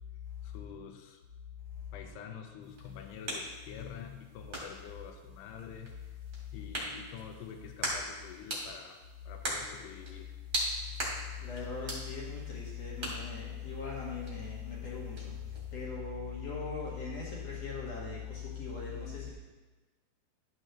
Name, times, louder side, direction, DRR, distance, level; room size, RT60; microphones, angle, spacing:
voice 1, 0.4-1.2 1.9-6.1 6.5-10.3, left 7 dB, 80° left, 5 dB, 2.6 m, -47 dB
sound 1, 2.6-15.9, right 1 dB, 35° right, 1.6 m, -41 dB
voice 2, 11.4-15.4 15.7-19.3, left 5 dB, 60° left, -4 dB, 1.7 m, -39 dB
12.0 x 8.2 x 2.9 m, 1.3 s
omnidirectional pair, 5.2 m